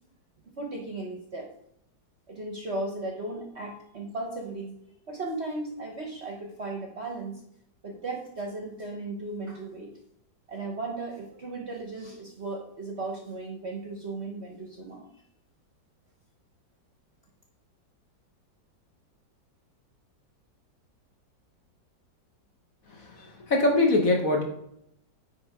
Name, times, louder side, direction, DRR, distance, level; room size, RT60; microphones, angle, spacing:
voice 1, 0.6-1.5 2.3-4.8 5.1-7.4 7.8-9.9 10.5-15.0, right 2 dB, 45° right, 1 dB, 1.0 m, -36 dB
voice 2, 23.2-24.4, left 2 dB, 50° left, 1 dB, 1.5 m, -23 dB
9.3 x 3.7 x 4.8 m, 0.76 s
omnidirectional pair, 2.1 m